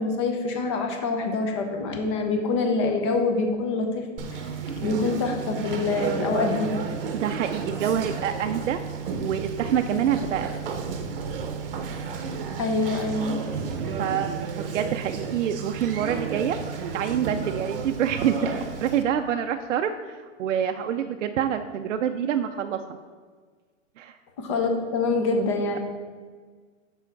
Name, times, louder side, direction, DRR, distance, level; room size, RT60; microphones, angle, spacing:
voice 1, 0.0-4.0 4.3-4.4 4.8-6.7 12.6-13.4 24.4-25.8, left 3 dB, 20° left, 4 dB, 0.6 m, -25 dB
Conversation, 4.2-19.0, right 5 dB, 45° right, 0.8 m, -32 dB
voice 2, 7.1-8.8 9.2-10.6 14.0-16.6 16.9-22.8 24.0-24.2, right 9 dB, 65° right, 6 dB, 0.5 m, -26 dB
6.1 x 5.6 x 4.5 m, 1.5 s
hypercardioid pair, 160°, 40 cm